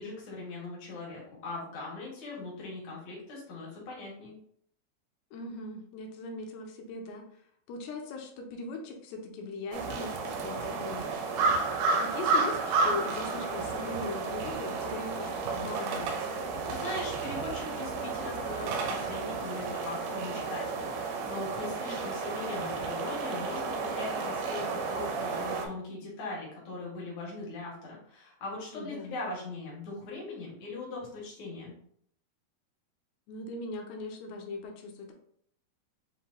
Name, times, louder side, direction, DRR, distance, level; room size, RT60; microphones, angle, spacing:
voice 1, 0.0-4.3 16.7-31.7, left 2 dB, 65° left, -4 dB, 1.9 m, -40 dB
voice 2, 5.3-7.4 7.7-11.2 11.9-16.2 28.7-29.1 33.3-35.1, left 3 dB, 90° left, 2 dB, 2.6 m, -40 dB
sound 1, 9.7-25.7, right 4 dB, 85° right, 2.6 m, -32 dB
7.2 x 2.8 x 2.3 m, 0.65 s
omnidirectional pair, 4.6 m